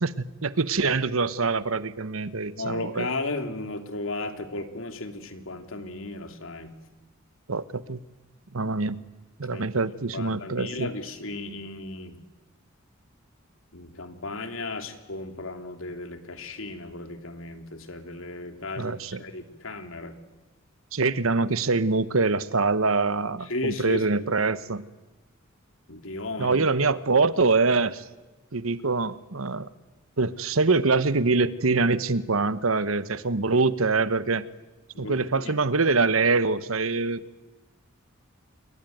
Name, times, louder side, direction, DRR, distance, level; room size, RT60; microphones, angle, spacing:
voice 1, 0.0-3.1 7.5-8.0 8.5-9.0 9.4-10.9 18.8-19.2 20.9-24.8 26.4-28.1 28.5-29.7 30.2-34.4 35.0-37.2, right 3 dB, 85° right, 15 dB, 1.1 m, -24 dB
voice 2, 2.5-6.7 9.5-9.7 10.1-12.2 13.7-20.2 23.4-24.3 25.9-26.7 34.9-35.5, left 2 dB, 70° left, 7 dB, 2.9 m, -35 dB
28.0 x 22.5 x 9.3 m, 1.1 s
head